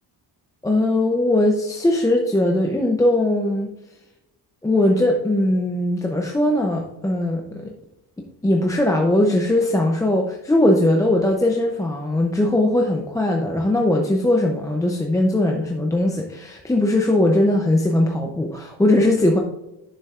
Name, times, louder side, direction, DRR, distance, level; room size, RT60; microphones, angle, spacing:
voice 1, 0.6-3.7 4.6-7.7 8.4-19.4, left 1 dB, 10° left, 1 dB, 0.5 m, -20 dB
10.0 x 7.0 x 2.4 m, 0.90 s
wide cardioid pair, 175°, 40 cm